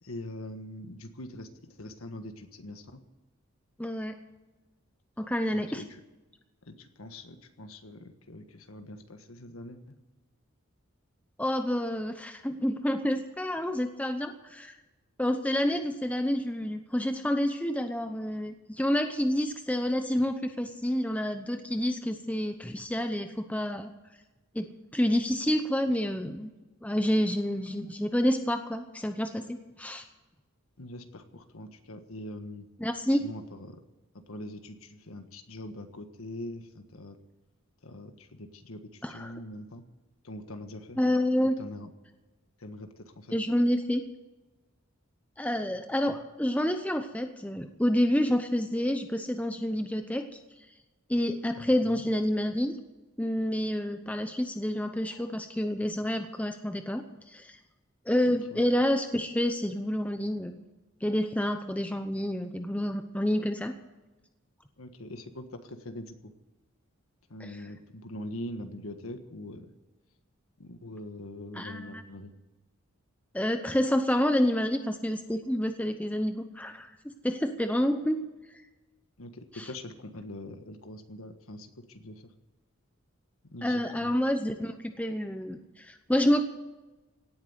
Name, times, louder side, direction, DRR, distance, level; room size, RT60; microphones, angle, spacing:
voice 1, 0.0-3.0 5.5-6.0 6.6-10.0 30.8-32.7 33.1-33.8 34.1-37.2 37.8-39.8 40.2-41.0 41.6-41.9 42.6-43.4 46.1-46.2 51.5-52.0 58.3-58.6 64.8-66.3 67.3-69.7 70.6-72.3 79.2-82.3 83.5-84.1, left 1 dB, 85° left, 7 dB, 1.5 m, -43 dB
voice 2, 3.8-4.2 5.2-5.8 11.4-14.8 15.2-23.9 24.5-26.5 26.8-30.0 32.8-33.2 39.0-39.3 41.0-41.6 43.3-44.0 45.4-50.3 51.1-52.8 53.2-57.6 58.1-60.6 61.0-63.7 71.6-72.0 73.3-76.9 77.2-78.2 83.6-86.4, equal, 5° left, 7 dB, 0.7 m, -28 dB
17.5 x 9.2 x 8.1 m, 1.1 s
head